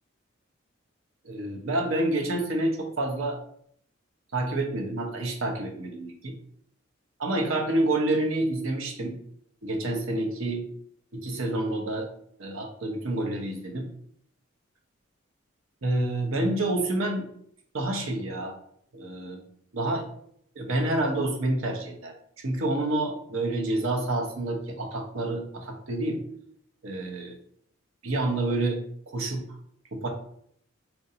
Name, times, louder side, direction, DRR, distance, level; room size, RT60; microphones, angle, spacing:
voice 1, 1.2-3.4 4.3-6.3 7.2-9.1 9.6-10.6 11.1-12.1 12.4-13.9 15.8-17.3 17.7-18.5 18.9-19.4 19.7-20.1 20.6-22.1 22.4-26.2 26.8-27.4 28.0-28.8 29.1-29.4 29.9-30.1, right 2 dB, 75° right, 2 dB, 0.8 m, -28 dB
4.2 x 2.6 x 2.7 m, 0.66 s
head